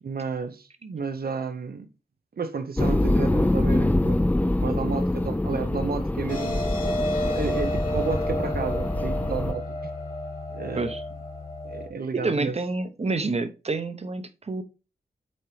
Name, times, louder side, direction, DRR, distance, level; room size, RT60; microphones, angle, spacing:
voice 1, 0.0-1.9 2.4-9.8 10.5-10.9 11.6-12.6, right 5 dB, 65° right, 0.8 m, -32 dB
sound 1, 2.8-9.5, left 1 dB, 10° left, 0.4 m, -25 dB
sound 2, 6.3-11.9, left 1 dB, 55° left, 1.9 m, -31 dB
voice 2, 12.1-14.6, right 3 dB, 40° right, 0.8 m, -28 dB
7.2 x 4.5 x 3.2 m
wide cardioid pair, 95°, 17 cm